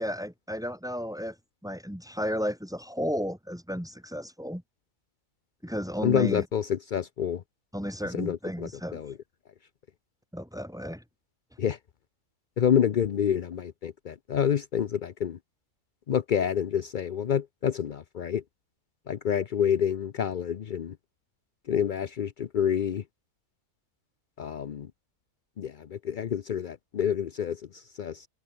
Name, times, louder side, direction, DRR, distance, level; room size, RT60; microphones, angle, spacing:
voice 1, 0.0-1.4 1.6-4.6 5.6-6.5 7.7-9.0 10.3-11.0, equal, ahead, 2.1 m, -33 dB
voice 2, 6.0-7.4 8.1-9.1 11.6-11.8 12.6-15.4 16.1-18.4 19.1-20.9 21.7-23.0 24.4-24.9 25.6-28.3, left 8 dB, 65° left, 0.4 m, -28 dB
omnidirectional pair, 1.6 m